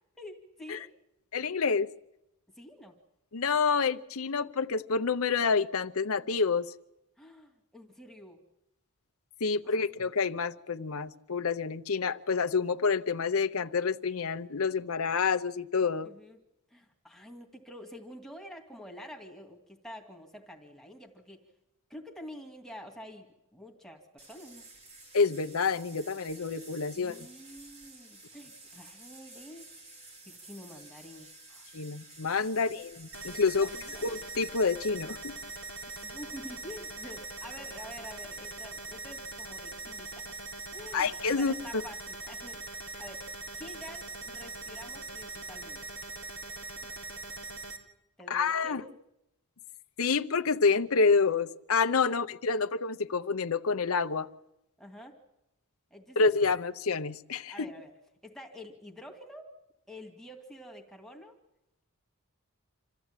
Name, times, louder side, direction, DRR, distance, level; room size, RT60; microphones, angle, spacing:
voice 1, 0.2-0.9 2.6-3.0 7.2-8.4 9.6-9.9 16.0-16.4 16.7-21.4 21.9-24.6 26.9-29.7 30.3-31.7 33.6-34.1 35.9-40.2 40.7-41.1 41.4-42.6 43.0-43.3 43.6-45.8 48.2-48.9 52.1-52.2 54.8-55.2 55.9-56.3 57.5-57.9 58.2-59.5 59.9-61.4, left 1 dB, ahead, 2.3 m, -48 dB
voice 2, 1.3-1.9 3.3-6.7 9.4-16.1 25.1-27.3 31.7-33.7 34.0-35.3 40.9-41.5 48.3-48.8 50.0-54.3 56.2-57.7, left 4 dB, 70° left, 0.8 m, -28 dB
sound 1, 24.2-34.7, right 2 dB, 30° right, 3.8 m, -52 dB
sound 2, 33.1-47.8, right 2 dB, 65° right, 3.6 m, -42 dB
27.0 x 14.5 x 9.0 m
head